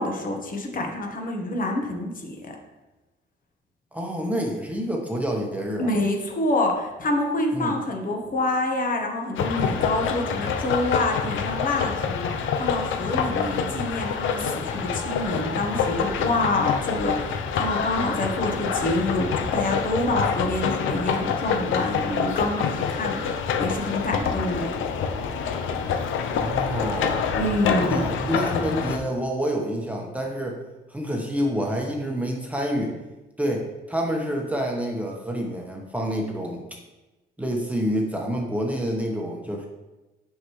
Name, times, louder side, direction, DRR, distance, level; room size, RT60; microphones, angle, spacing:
voice 1, 0.0-2.5 5.8-23.2 23.6-24.7 27.4-28.1, left 2 dB, 45° left, 2 dB, 1.3 m, -27 dB
voice 2, 3.9-5.9 7.5-7.7 26.2-27.2 27.9-30.6 30.9-32.9 33.4-36.6 37.4-39.7, equal, 5° right, 0 dB, 1.1 m, -28 dB
sound 1, 9.4-29.0, left 6 dB, 80° left, 0.7 m, -26 dB
6.1 x 5.7 x 3.2 m, 1.1 s
cardioid pair, 90°, 20 cm